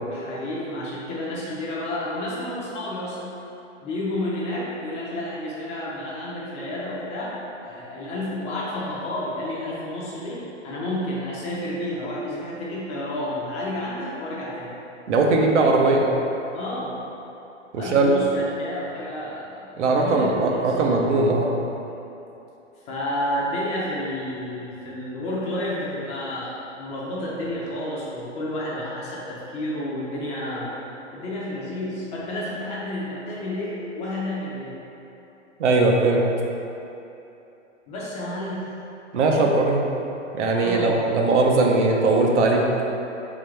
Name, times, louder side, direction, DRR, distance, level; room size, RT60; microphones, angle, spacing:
voice 1, 0.1-3.3 3.8-14.8 16.5-17.0 17.7-21.4 22.8-30.7 31.1-34.8 37.9-38.7 40.5-41.0, left 1 dB, 20° left, -6 dB, 0.5 m, -31 dB
voice 2, 15.1-16.1 17.7-18.1 19.8-21.5 35.6-36.2 39.1-39.9 40.3-42.7, right 3 dB, 70° right, 0 dB, 0.8 m, -19 dB
4.1 x 3.8 x 3.2 m, 2.9 s
hypercardioid pair, 135°, 37 cm